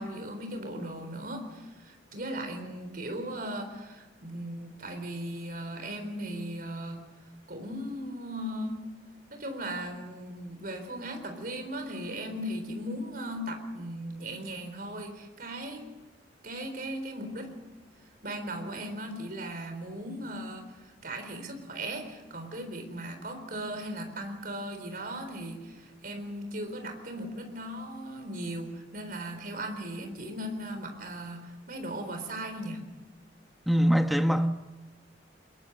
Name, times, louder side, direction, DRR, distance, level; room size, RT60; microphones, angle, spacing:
voice 1, 0.0-7.1 7.5-8.9 9.3-15.9 16.4-17.6 18.2-32.8, right 1 dB, 55° right, 4.1 m, -37 dB
voice 2, 33.7-34.5, equal, ahead, 1.1 m, -23 dB
22.5 x 21.5 x 8.1 m
head